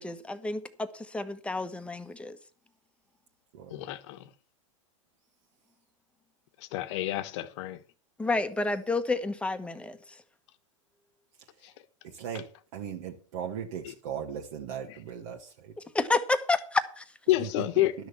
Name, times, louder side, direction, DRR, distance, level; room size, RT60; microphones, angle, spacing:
voice 1, 0.0-2.4 8.2-10.0 15.9-17.0, left 3 dB, 5° left, 1.2 m, -29 dB
voice 2, 3.7-4.3 6.7-7.8 17.3-17.9, left 15 dB, 60° left, 1.2 m, -28 dB
voice 3, 12.0-12.5 12.7-15.7 17.4-17.6, right 8 dB, 60° right, 1.8 m, -38 dB
12.0 x 6.3 x 7.0 m
hypercardioid pair, 115°, 17 cm